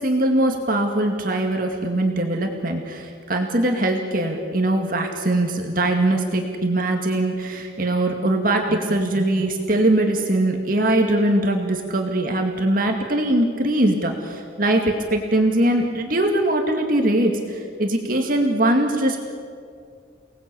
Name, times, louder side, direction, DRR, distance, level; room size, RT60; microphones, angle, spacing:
voice 1, 0.0-19.2, right 1 dB, 45° right, 2 dB, 2.3 m, -21 dB
29.5 x 19.5 x 8.5 m, 2.3 s
head